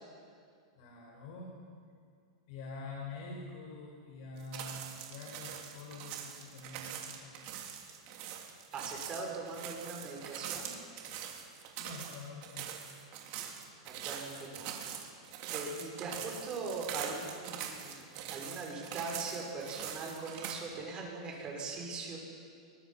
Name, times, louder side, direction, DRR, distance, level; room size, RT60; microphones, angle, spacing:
voice 1, 0.7-1.6 2.5-7.4 11.8-12.7, left 3 dB, 60° left, -2 dB, 5.1 m, -46 dB
sound 1, 4.4-20.5, right 9 dB, 50° right, 3.7 m, -43 dB
voice 2, 8.7-10.8 13.8-14.7 15.5-22.2, right 3 dB, 30° right, -1 dB, 5.9 m, -41 dB
23.5 x 21.0 x 5.8 m, 2.3 s
hypercardioid pair, 130°, 3 cm